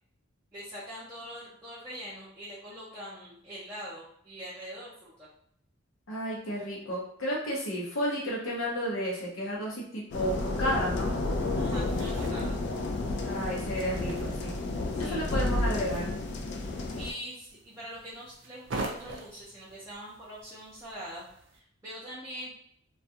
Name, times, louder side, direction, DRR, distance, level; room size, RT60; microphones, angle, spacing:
voice 1, 0.5-5.3 11.6-12.6 14.9-15.2 16.9-21.2 21.5-22.6, equal, 15° right, -11 dB, 0.6 m, -43 dB
voice 2, 6.1-11.1 13.2-14.6 15.0-16.1, equal, 75° left, -3 dB, 0.7 m, -32 dB
sound 1, 10.1-17.1, left 2 dB, 55° left, 0.3 m, -31 dB
sound 2, 11.2-21.6, right 2 dB, 60° right, 0.4 m, -45 dB
2.3 x 2.3 x 2.7 m, 0.67 s
head